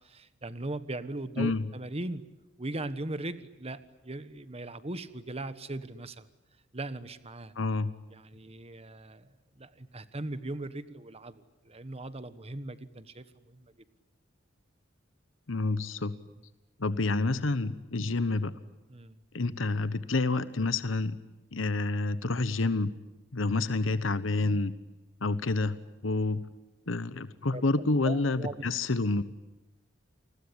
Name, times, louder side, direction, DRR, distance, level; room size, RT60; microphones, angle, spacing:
voice 1, 0.0-2.2 2.6-6.3 6.7-7.5 8.1-9.3 9.6-13.7 18.9-19.2 27.5-27.6 28.0-28.7, right 2 dB, 30° right, 13 dB, 1.3 m, -39 dB
voice 2, 7.6-7.9 15.5-16.2 16.8-18.5 19.3-21.2 21.5-22.9 23.3-24.7 25.2-25.8 26.0-26.4 26.9-29.2, left 3 dB, 90° left, 14 dB, 1.1 m, -28 dB
29.0 x 20.5 x 10.0 m, 1.0 s
head